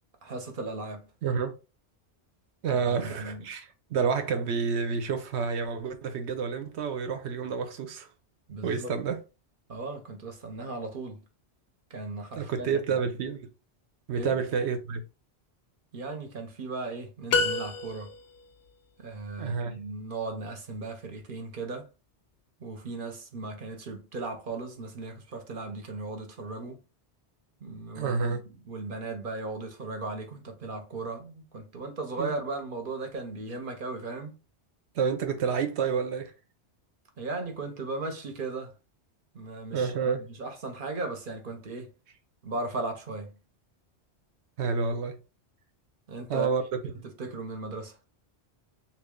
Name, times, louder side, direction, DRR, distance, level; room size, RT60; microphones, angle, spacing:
voice 1, 0.2-1.1 2.7-3.5 8.5-8.9 9.7-11.2 11.9-13.0 14.1-14.4 15.9-18.1 19.0-21.9 22.6-26.8 27.6-28.4 28.7-34.3 37.2-38.7 39.3-41.9 42.4-43.3 46.1-46.6 47.0-48.0, right 3 dB, 55° right, 0.9 m, -37 dB
voice 2, 1.2-1.6 2.6-8.1 8.6-9.2 12.3-13.4 14.1-15.1 19.4-19.8 27.9-28.4 32.2-32.3 34.9-36.3 39.7-40.3 44.6-45.2 46.3-46.6 46.9-47.0, right 5 dB, 80° right, 1.0 m, -29 dB
sound 1, 17.3-18.4, left 4 dB, 70° left, 0.8 m, -28 dB
3.1 x 2.5 x 3.6 m
omnidirectional pair, 1.1 m